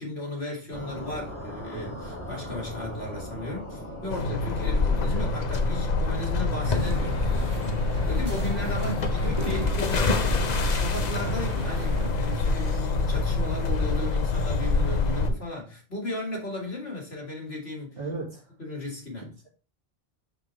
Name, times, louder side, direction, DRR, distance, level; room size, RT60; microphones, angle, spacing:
voice 1, 0.0-7.2 8.0-10.2 10.7-18.0 18.6-19.3, left 2 dB, 70° left, 2.4 m, -35 dB
sound 1, 0.7-7.7, equal, 10° left, 2.6 m, -40 dB
sound 2, 4.1-15.3, left 3 dB, 45° left, 0.7 m, -26 dB
sound 3, 6.6-12.1, equal, 25° right, 1.6 m, -35 dB
voice 2, 8.7-9.4 18.0-18.5, right 3 dB, 60° right, 2.3 m, -36 dB
5.8 x 5.7 x 3.2 m
omnidirectional pair, 1.1 m